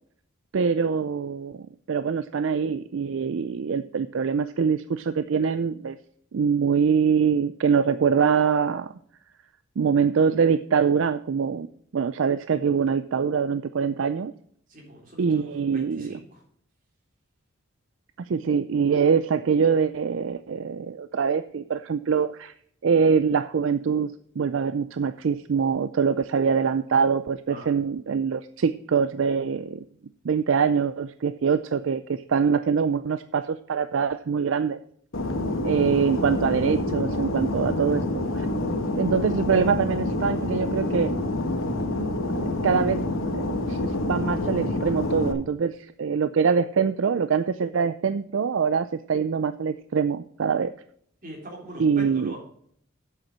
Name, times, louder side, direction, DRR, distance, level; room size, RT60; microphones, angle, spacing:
voice 1, 0.5-6.0 6.3-8.9 9.8-11.7 11.9-14.3 15.2-16.2 18.3-22.5 22.8-29.8 30.2-34.8 35.6-38.5 39.0-41.1 42.6-43.0 43.3-50.7 51.8-52.3, right 6 dB, 65° right, 12 dB, 0.4 m, -24 dB
voice 2, 14.7-16.4 27.5-27.7 51.2-52.4, right 1 dB, 40° right, -1 dB, 3.6 m, -42 dB
Fixed-wing aircraft airplane, 35.1-45.3, left 1 dB, 75° left, 1.3 m, -27 dB
8.0 x 7.3 x 6.1 m, 0.64 s
head